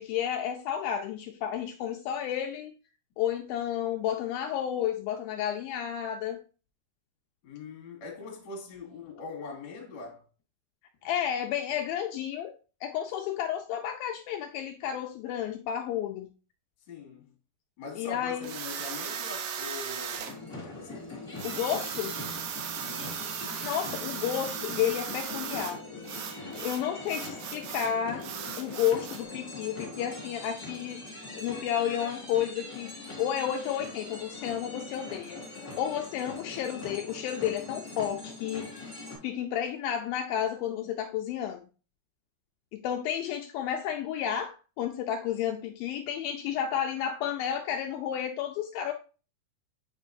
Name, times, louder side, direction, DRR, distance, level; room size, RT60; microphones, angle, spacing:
voice 1, 0.0-2.7 3.2-6.4 11.0-12.5 12.8-16.3 18.0-18.5 21.4-22.1 23.6-25.8 26.5-28.3 28.6-31.0 31.3-35.4 35.8-38.8 39.2-41.7 42.7-48.9, left 9 dB, 85° left, 2.1 m, -31 dB
voice 2, 7.4-10.3 16.9-17.3 17.8-21.0 22.8-23.2, left 4 dB, 45° left, 1.7 m, -42 dB
sound 1, 18.4-20.4 21.4-25.8 26.0-27.9 28.2-29.2, right 8 dB, 75° right, 2.3 m, -37 dB
sound 2, 20.2-39.2, left 2 dB, 10° left, 2.1 m, -42 dB
7.4 x 5.2 x 2.6 m
omnidirectional pair, 4.7 m